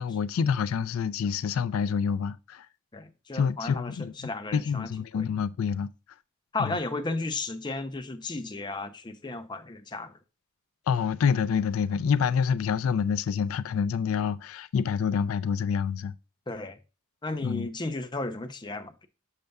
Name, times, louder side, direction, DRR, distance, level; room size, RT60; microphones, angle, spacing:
voice 1, 0.0-2.7 3.3-4.1 4.5-5.9 6.6-6.8 10.9-16.1 17.4-17.7, left 6 dB, 80° left, 0.4 m, -27 dB
voice 2, 2.9-4.9 5.1-5.3 6.5-10.1 16.5-16.8 17.2-19.1, left 2 dB, 20° left, 0.5 m, -34 dB
6.6 x 6.5 x 2.3 m
head